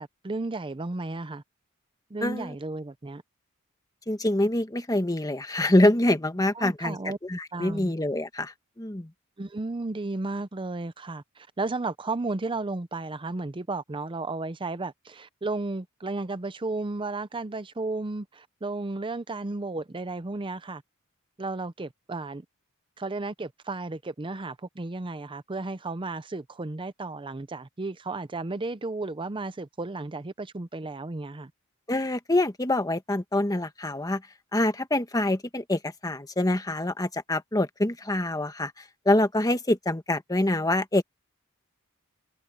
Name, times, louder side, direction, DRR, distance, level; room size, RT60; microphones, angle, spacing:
voice 1, 0.0-1.4 2.1-3.2 6.5-7.2 7.5-7.9 9.4-20.8 21.4-22.5 23.0-31.5, right 3 dB, 25° right, 0.6 m, -33 dB
voice 2, 2.2-2.5 4.1-7.0 7.2-9.1 31.9-34.2 34.5-41.0, left 1 dB, 15° left, 1.3 m, -25 dB
head